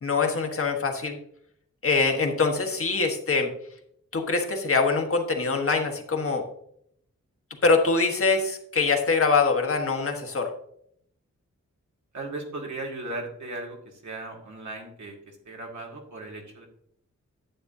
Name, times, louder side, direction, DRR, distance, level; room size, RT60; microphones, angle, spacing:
voice 1, 0.0-1.2 1.8-3.5 4.1-6.4 7.6-10.5, left 4 dB, 45° left, 3 dB, 1.4 m, -24 dB
voice 2, 12.1-16.7, right 2 dB, 70° right, 0 dB, 2.1 m, -37 dB
10.0 x 8.5 x 2.7 m, 0.71 s
wide cardioid pair, 130°, 30 cm